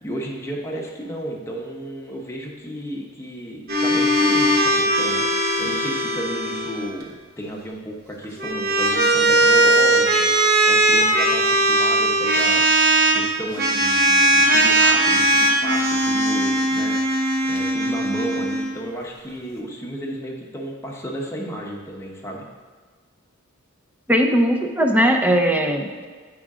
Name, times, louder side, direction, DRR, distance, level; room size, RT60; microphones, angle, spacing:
voice 1, 0.0-5.2 5.6-10.3 10.6-12.6 13.1-17.0 17.5-22.4, right 1 dB, 15° left, -2 dB, 0.9 m, -32 dB
sound 1, 3.7-6.9 8.2-13.2 13.6-18.7, right 1 dB, 50° right, 0.9 m, -19 dB
voice 2, 24.1-26.0, equal, 10° right, 3 dB, 0.6 m, -19 dB
7.7 x 5.1 x 3.7 m, 1.5 s
head